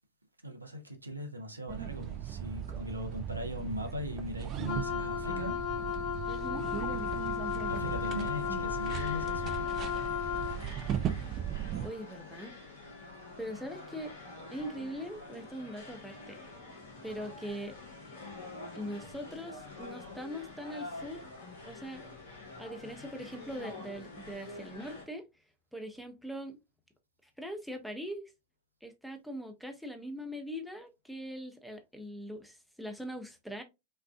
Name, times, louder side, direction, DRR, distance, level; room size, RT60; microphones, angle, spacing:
voice 1, 0.4-5.6 7.7-9.8, equal, 85° right, 0.8 m, -39 dB
sound 1, 1.7-11.9, right 10 dB, 35° right, 0.5 m, -38 dB
Wind instrument woodwind instrument, 4.6-10.6, left 9 dB, 45° left, 1.0 m, -34 dB
sound 2, 6.3-25.1, left 2 dB, 60° left, 1.6 m, -47 dB
voice 2, 6.3-6.7 11.8-12.5 13.4-14.1 14.5-16.4 17.0-17.7 18.7-21.2 21.6-22.0 22.6-25.2 25.7-26.6 27.4-28.3 28.8-33.6, equal, ahead, 0.8 m, -41 dB
5.4 x 2.5 x 2.3 m
figure-of-eight pair, 90°, 0 cm